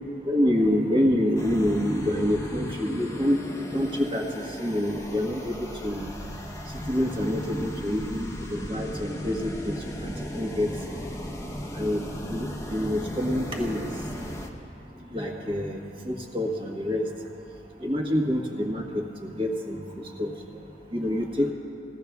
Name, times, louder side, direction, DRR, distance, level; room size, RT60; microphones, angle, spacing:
voice 1, 0.3-3.4 3.7-6.1 6.9-10.7 11.8-12.0 12.3-13.9 15.1-17.1 17.8-19.8 20.2-20.3 20.9-21.5, left 1 dB, 30° right, 0 dB, 1.3 m, -27 dB
sound 1, 1.4-14.5, equal, 15° left, 0.8 m, -37 dB
20.0 x 15.0 x 2.3 m, 2.8 s
head